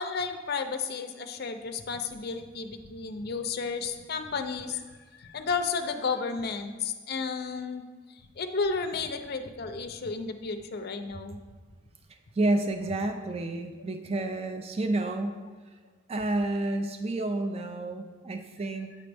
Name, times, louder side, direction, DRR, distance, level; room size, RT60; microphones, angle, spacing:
voice 1, 0.0-11.4, left 4 dB, 45° left, 6 dB, 0.5 m, -33 dB
voice 2, 12.4-15.4 16.1-18.9, right 2 dB, 30° right, 6 dB, 0.3 m, -30 dB
8.4 x 5.1 x 3.4 m, 1.4 s
head